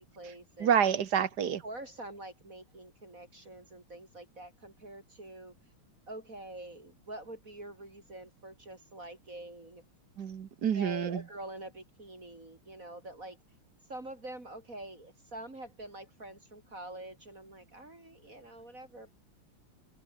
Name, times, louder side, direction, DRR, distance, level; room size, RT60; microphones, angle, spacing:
voice 1, 0.0-0.7 1.6-5.5 6.1-9.9 10.7-13.4 13.9-19.1, right 1 dB, 40° right, 4.9 m, -46 dB
voice 2, 0.6-1.6 10.2-11.2, right 8 dB, 55° right, 1.8 m, -28 dB
omnidirectional pair, 2.3 m